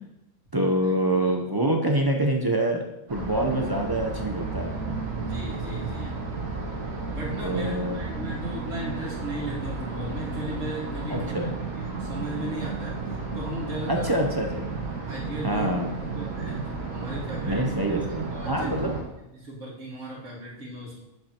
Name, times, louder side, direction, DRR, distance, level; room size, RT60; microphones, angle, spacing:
voice 1, 0.5-2.8 3.1-5.0 6.0-6.1 7.3-8.0 11.1-11.5 13.9-14.7 15.4-15.9 17.4-18.9, right 1 dB, 30° right, 1 dB, 0.4 m, -26 dB
sound 1, 3.1-19.0, right 4 dB, 85° right, 1.9 m, -33 dB
voice 2, 5.3-6.2 7.1-11.2 11.8-13.0 13.3-14.1 15.1-15.7 16.2-16.6 16.9-17.6 17.9-18.0 18.3-18.7 19.3-21.0, equal, 60° right, -4 dB, 2.4 m, -36 dB
8.6 x 7.6 x 2.9 m, 0.91 s
omnidirectional pair, 1.5 m